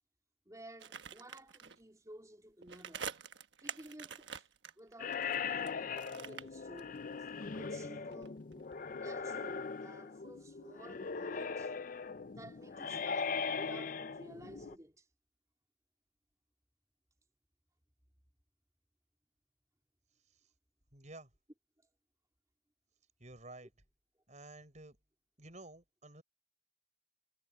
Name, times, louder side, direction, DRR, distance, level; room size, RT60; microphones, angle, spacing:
voice 1, 0.4-3.2 3.6-4.3 4.8-7.0 7.4-8.4 8.9-11.8 12.3-15.1, right 1 dB, 20° right, 3.1 m, -54 dB
sound 1, 0.8-1.8 2.6-5.7 6.0-7.3 7.6-9.2 9.5-9.6, right 7 dB, 80° right, 1.2 m, -47 dB
sound 2, 5.0-14.7, left 5 dB, 50° left, 0.5 m, -40 dB
voice 2, 20.9-21.3 23.2-23.7 24.3-25.0 25.4-26.2, right 2 dB, 40° right, 6.7 m, -52 dB
head